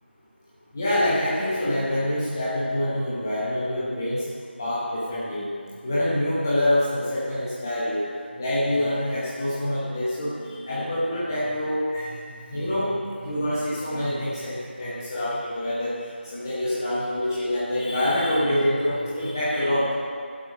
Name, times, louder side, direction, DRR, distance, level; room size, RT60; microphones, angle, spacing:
voice 1, 0.7-4.2 4.6-5.5 5.8-8.1 8.4-12.2 12.5-20.1, left 1 dB, 15° left, -10 dB, 1.0 m, -26 dB
14.0 x 7.7 x 5.4 m, 2.3 s
figure-of-eight pair, 175°, 6 cm